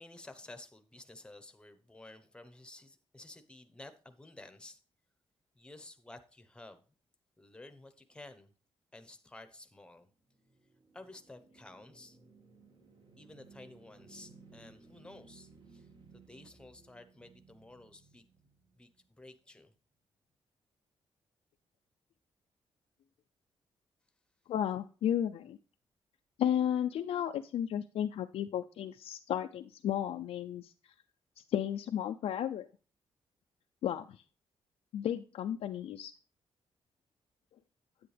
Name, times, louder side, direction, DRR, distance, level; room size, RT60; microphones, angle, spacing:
voice 1, 0.0-4.8 5.5-6.8 7.4-8.5 8.9-10.1 10.9-12.2 13.2-18.3 18.7-18.9 19.2-19.7, left 2 dB, 10° left, 9 dB, 1.0 m, -53 dB
sound 1, 10.0-19.2, right 4 dB, 50° right, 1.9 m, -60 dB
voice 2, 24.5-25.6 26.4-30.7 31.5-32.7 33.8-34.2 34.9-36.1, left 10 dB, 85° left, 5 dB, 0.5 m, -33 dB
9.8 x 8.6 x 3.4 m, 0.37 s
wide cardioid pair, 150°, 10 cm